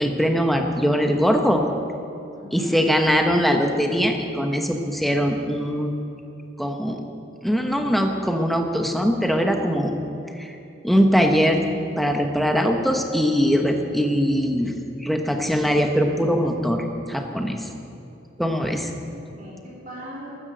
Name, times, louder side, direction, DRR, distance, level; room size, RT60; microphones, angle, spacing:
voice 1, 0.0-1.6 2.5-6.0 6.6-7.0 7.4-9.9 10.4-10.5 10.8-14.7 15.0-17.7 18.4-18.9, equal, ahead, 3 dB, 1.1 m, -21 dB
voice 2, 2.3-2.8 12.2-12.4 18.8-20.3, equal, 40° right, -6 dB, 3.7 m, -41 dB
13.0 x 13.0 x 7.8 m, 2.9 s
head